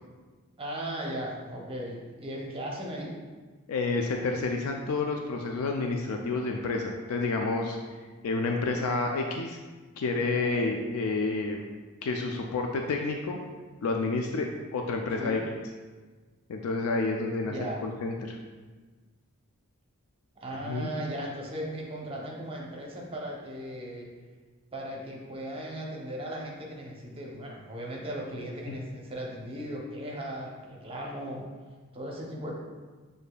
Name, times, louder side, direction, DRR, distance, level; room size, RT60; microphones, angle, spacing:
voice 1, 0.6-3.2 10.3-10.7 15.2-15.4 17.4-17.8 20.4-24.1 24.7-31.5 31.9-32.6, right 1 dB, 25° right, -2 dB, 0.6 m, -37 dB
voice 2, 3.7-7.8 8.2-9.6 10.0-11.6 12.0-13.4 13.8-15.4 16.5-18.4 20.6-20.9, left 3 dB, 75° left, 2 dB, 0.4 m, -29 dB
6.4 x 2.7 x 2.2 m, 1.4 s
head